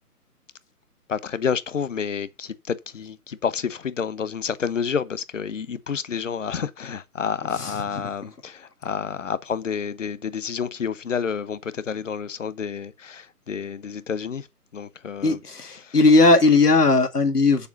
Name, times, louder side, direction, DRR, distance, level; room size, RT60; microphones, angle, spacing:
voice 1, 1.1-14.5 14.7-15.4 15.8-15.9, left 6 dB, 55° left, 0.9 m, -29 dB
voice 2, 15.2-17.7, left 3 dB, 75° left, 2.0 m, -17 dB
7.0 x 6.9 x 5.7 m
figure-of-eight pair, 140°, 46 cm